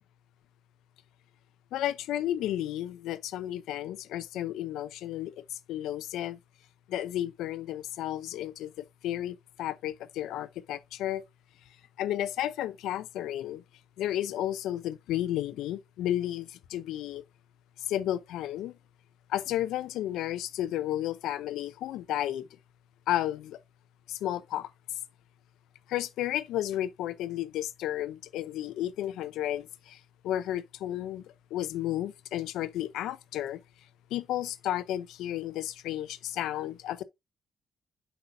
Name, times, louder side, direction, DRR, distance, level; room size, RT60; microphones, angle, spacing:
voice 1, 1.7-6.4 6.9-11.2 12.0-13.6 14.0-17.2 17.9-18.7 19.3-22.5 23.1-23.6 24.1-24.7 25.9-33.6 34.1-37.0, left 12 dB, 85° left, 0.6 m, -32 dB
7.9 x 5.5 x 2.7 m
cardioid pair, 90°, 0 cm